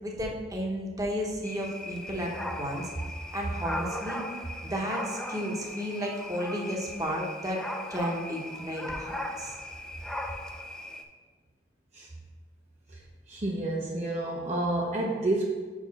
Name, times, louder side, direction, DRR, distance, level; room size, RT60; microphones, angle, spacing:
voice 1, 0.0-2.9 3.3-4.2 4.6-7.6 7.9-9.6, equal, 20° right, -1 dB, 1.0 m, -33 dB
sound 1, 1.4-11.0, left 1 dB, 5° left, 0.4 m, -38 dB
voice 2, 13.3-15.5, right 2 dB, 40° right, -2 dB, 0.8 m, -29 dB
5.1 x 4.8 x 5.7 m, 1.4 s
head